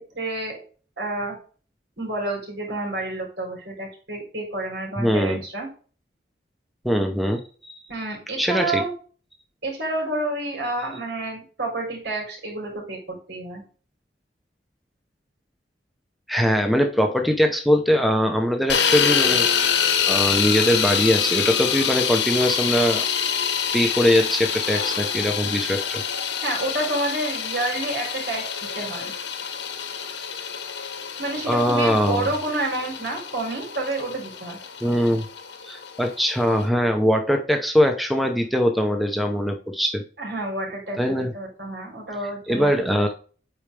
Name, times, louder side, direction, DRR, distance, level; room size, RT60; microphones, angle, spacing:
voice 1, 0.1-0.6 1.0-1.4 2.0-5.7 7.9-8.9 9.6-13.6 26.4-28.4 28.7-29.1 31.2-34.6 40.2-43.1, right 2 dB, 75° right, -1 dB, 3.8 m, -29 dB
voice 2, 5.0-5.4 6.8-7.8 8.4-8.8 16.3-19.5 20.1-23.1 23.7-26.0 31.5-32.3 34.8-35.2 35.6-40.0 41.0-41.3 42.5-43.1, equal, ahead, 4 dB, 0.7 m, -21 dB
sound 1, 18.7-36.6, left 7 dB, 80° left, 1.2 m, -26 dB
8.7 x 4.8 x 3.4 m, 0.39 s
head